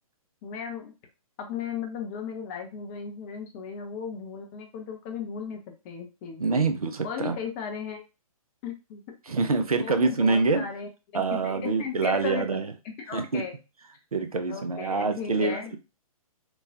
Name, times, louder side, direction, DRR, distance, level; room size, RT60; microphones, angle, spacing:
voice 1, 0.4-0.9 1.4-5.6 5.8-6.6 7.0-8.0 8.6-9.0 9.8-12.6 13.1-13.5 14.5-15.8, left 7 dB, 20° left, 3 dB, 0.5 m, -36 dB
voice 2, 6.4-7.4 9.3-10.7 11.1-12.7 13.1-13.4 14.1-15.6, right 4 dB, 75° right, 7 dB, 0.5 m, -25 dB
3.0 x 2.2 x 2.6 m, 0.29 s
figure-of-eight pair, 125°, 19 cm